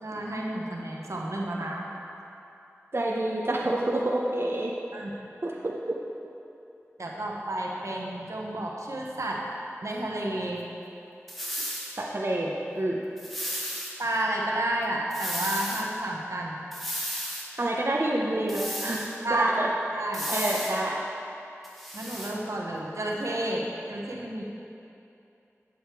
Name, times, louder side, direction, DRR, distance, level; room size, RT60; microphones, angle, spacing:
voice 1, 0.0-1.8 4.9-5.1 7.0-9.4 9.8-10.7 14.0-16.6 19.2-19.5 19.9-20.3 21.9-24.4, right 1 dB, 80° right, -2 dB, 1.0 m, -31 dB
voice 2, 2.9-4.7 5.4-6.0 12.0-13.0 17.6-19.0 19.3-19.7 20.3-21.0, right 1 dB, 50° right, -3 dB, 0.8 m, -27 dB
sound 1, 11.3-12.0 13.2-13.9 15.1-15.9 16.7-17.5 18.5-19.2 20.1-20.8 21.6-22.3, equal, ahead, 1.2 m, -34 dB
8.3 x 6.3 x 4.7 m, 2.8 s
wide cardioid pair, 55°, 5 cm